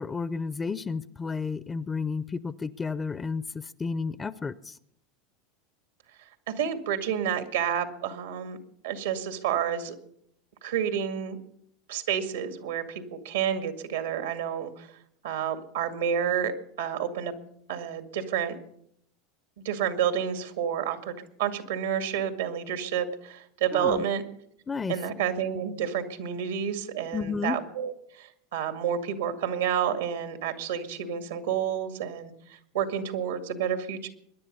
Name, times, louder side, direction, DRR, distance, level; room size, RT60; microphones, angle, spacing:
voice 1, 0.0-4.8 23.7-24.0 24.7-24.9 27.1-27.6, left 5 dB, 20° left, 15 dB, 0.6 m, -32 dB
voice 2, 6.5-8.6 8.8-10.0 10.6-11.4 11.9-14.9 15.2-16.5 16.8-17.3 17.7-18.6 19.6-24.2 24.9-34.1, right 8 dB, 80° right, 7 dB, 2.1 m, -30 dB
23.5 x 11.0 x 5.5 m, 0.72 s
hypercardioid pair, 95°, 0 cm